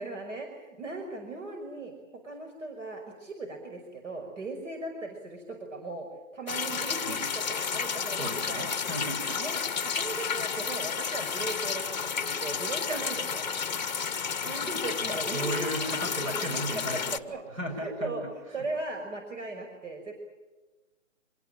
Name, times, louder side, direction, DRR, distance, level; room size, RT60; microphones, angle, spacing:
voice 1, 0.0-1.9 2.2-6.1 6.3-8.7 9.3-13.4 14.4-16.3 16.7-16.8 17.1-17.4 17.7-18.2 18.5-20.2, right 2 dB, 65° right, 3 dB, 5.7 m, -38 dB
sound 1, 6.5-17.2, left 6 dB, 35° left, 1.1 m, -31 dB
voice 2, 8.2-9.4 12.9-13.0 15.0-18.1, right 1 dB, 85° right, 6 dB, 7.7 m, -35 dB
27.5 x 19.0 x 8.9 m, 1.2 s
hypercardioid pair, 175°, 40 cm